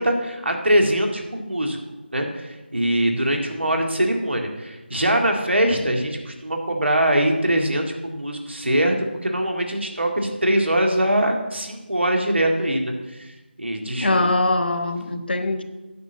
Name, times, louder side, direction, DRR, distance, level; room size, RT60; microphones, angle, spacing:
voice 1, 0.0-1.8 2.1-8.9 9.2-13.3 13.6-14.3, right 1 dB, 75° right, 2 dB, 2.0 m, -22 dB
voice 2, 14.0-15.6, left 2 dB, 60° left, 9 dB, 0.9 m, -22 dB
9.5 x 6.0 x 7.0 m, 1.1 s
figure-of-eight pair, 165°, 6 cm